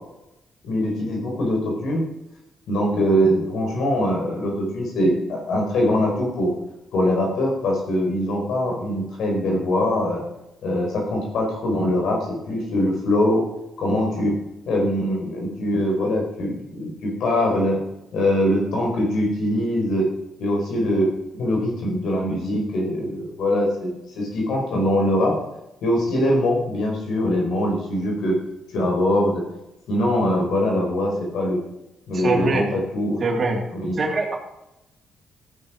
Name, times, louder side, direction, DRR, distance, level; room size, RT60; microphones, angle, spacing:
voice 1, 0.6-2.0 2.7-6.5 6.9-10.2 10.6-13.4 13.8-14.4 14.7-17.8 18.1-20.1 20.4-25.3 25.8-28.4 28.7-29.4 29.9-31.6 32.1-33.3 33.7-34.0, left 1 dB, 75° left, 0 dB, 4.5 m, -22 dB
voice 2, 32.1-32.7 33.2-33.6 33.9-34.4, right 3 dB, 45° right, 1 dB, 2.8 m, -23 dB
14.5 x 9.2 x 5.0 m, 0.89 s
cardioid pair, 75°, 0 cm